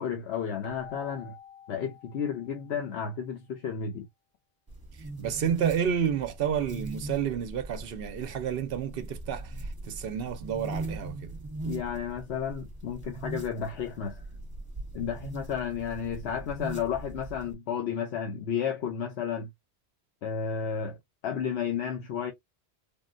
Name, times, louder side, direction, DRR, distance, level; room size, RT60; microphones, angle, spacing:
voice 1, 0.0-1.3 1.7-4.0 11.6-14.2 14.9-19.5 20.2-21.0 21.2-22.3, left 7 dB, 70° left, 0.9 m, -32 dB
Keyboard (musical), 0.6-3.2, left 7 dB, 10° left, 0.7 m, -49 dB
sound 1, 4.7-17.5, right 2 dB, 20° right, 1.0 m, -40 dB
voice 2, 5.2-11.3, right 8 dB, 65° right, 0.7 m, -30 dB
3.5 x 2.1 x 2.4 m
omnidirectional pair, 1.2 m